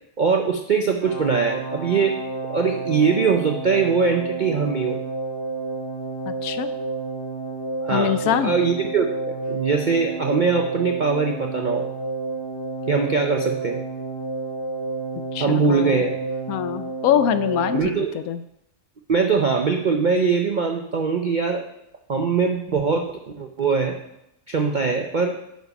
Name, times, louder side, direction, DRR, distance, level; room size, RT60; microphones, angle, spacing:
voice 1, 0.2-2.2 2.5-5.0 7.8-11.8 12.9-13.8 15.4-16.2 17.7-18.1 19.1-21.7 22.1-24.0 24.5-25.3, right 5 dB, 65° right, 4 dB, 0.4 m, -22 dB
sound 1, 1.0-17.8, right 3 dB, 40° left, 3.1 m, -30 dB
voice 2, 6.3-6.7 7.9-8.6 15.3-16.0 16.5-18.4, left 10 dB, 70° left, 12 dB, 1.0 m, -24 dB
9.2 x 5.2 x 5.4 m, 0.82 s
omnidirectional pair, 1.7 m